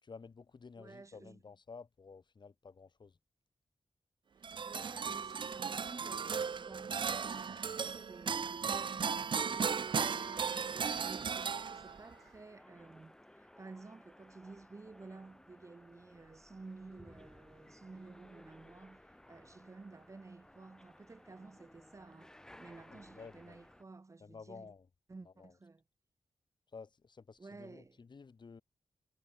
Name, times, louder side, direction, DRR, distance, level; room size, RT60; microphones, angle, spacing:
voice 1, 0.0-3.2 22.9-23.6 24.2-24.9 25.2-25.5 26.7-28.6, left 5 dB, 45° left, 4.3 m, -53 dB
voice 2, 0.8-1.4 4.4-22.3 22.6-24.7 25.1-25.8 27.4-28.0, right 3 dB, 30° right, 2.0 m, -53 dB
sound 1, 4.4-12.1, right 6 dB, 50° right, 0.7 m, -36 dB
sound 2, 9.4-23.8, left 1 dB, 5° left, 1.2 m, -59 dB
wide cardioid pair, 130°, 11 cm